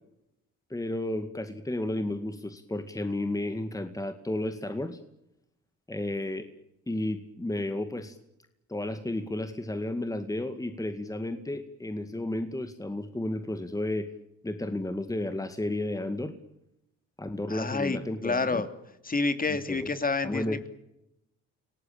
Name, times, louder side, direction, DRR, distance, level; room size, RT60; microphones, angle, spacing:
voice 1, 0.7-5.0 5.9-6.5 6.9-8.2 8.7-14.1 14.4-16.3 17.2-18.6 19.5-19.9 20.2-20.6, left 1 dB, 10° left, 8 dB, 2.2 m, -32 dB
voice 2, 17.5-18.7 19.0-20.7, left 3 dB, 30° left, 10 dB, 2.9 m, -29 dB
29.0 x 18.5 x 8.8 m, 0.85 s
cardioid pair, 90°, 30 cm